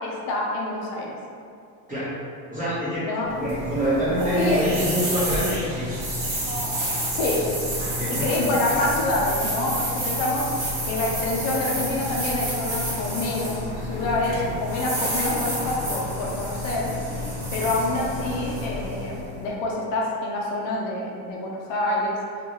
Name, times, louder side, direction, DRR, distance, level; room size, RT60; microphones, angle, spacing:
voice 1, 0.0-1.2 3.0-3.3 4.3-4.6 7.1-7.4 8.2-10.5 10.8-13.6 13.9-16.9 17.5-22.2, left 2 dB, 65° left, -3 dB, 0.6 m, -26 dB
voice 2, 2.5-3.1 3.4-5.9 8.0-8.3 14.3-14.4, equal, 15° right, -11 dB, 0.9 m, -26 dB
sound 1, 3.3-19.5, equal, 40° right, 1.0 m, -29 dB
2.5 x 2.3 x 2.9 m, 2.4 s
cardioid pair, 135°, 49 cm